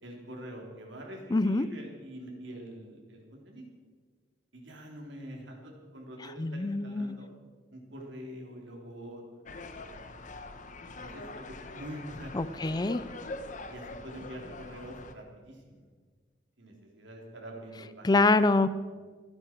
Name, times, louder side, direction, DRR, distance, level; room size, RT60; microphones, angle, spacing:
voice 1, 0.0-3.6 4.5-7.3 7.7-10.0 10.8-12.3 13.7-15.8 16.6-18.1, equal, 70° right, 0 dB, 3.6 m, -45 dB
voice 2, 1.3-1.7 6.4-7.3 12.3-13.0 18.0-18.7, left 3 dB, 20° left, 14 dB, 0.4 m, -25 dB
sound 1, 9.5-15.1, left 2 dB, 40° left, 1.0 m, -43 dB
27.5 x 9.8 x 4.7 m, 1.5 s
head